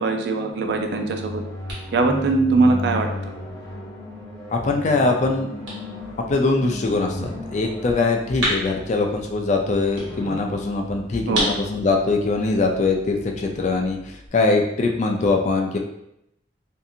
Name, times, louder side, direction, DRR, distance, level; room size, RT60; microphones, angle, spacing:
voice 1, 0.0-1.4 1.9-3.1 11.3-11.5, right 3 dB, 60° right, 4 dB, 0.3 m, -21 dB
sound 1, 0.5-12.1, left 1 dB, 20° left, 0.7 m, -35 dB
sound 2, 0.8-14.3, right 1 dB, 80° right, 1.2 m, -36 dB
voice 2, 4.5-5.5 6.3-15.8, left 3 dB, 40° left, 2 dB, 0.3 m, -22 dB
2.6 x 2.4 x 2.6 m, 0.80 s
head